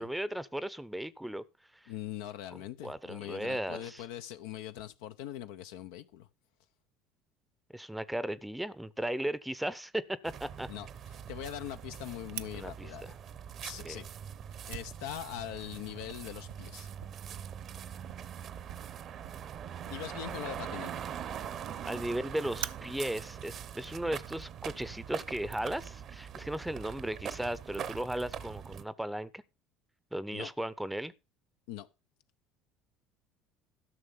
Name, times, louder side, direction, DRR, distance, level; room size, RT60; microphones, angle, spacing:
voice 1, 0.0-1.4 1.7-1.9 2.5-4.0 7.7-10.7 12.5-12.9 13.8-14.0 21.8-29.4 30.1-31.1, right 1 dB, 5° right, 0.7 m, -36 dB
voice 2, 1.9-6.3 10.7-10.9 11.3-13.1 13.6-14.1 14.7-16.9 19.9-21.0 30.3-30.5 31.7-31.9, left 12 dB, 75° left, 0.7 m, -42 dB
sound 1, 10.2-28.8, right 8 dB, 50° right, 0.8 m, -43 dB
Fire, 12.3-24.8, right 14 dB, 80° right, 0.5 m, -49 dB
13.0 x 6.2 x 5.5 m
hypercardioid pair, 75°, 0 cm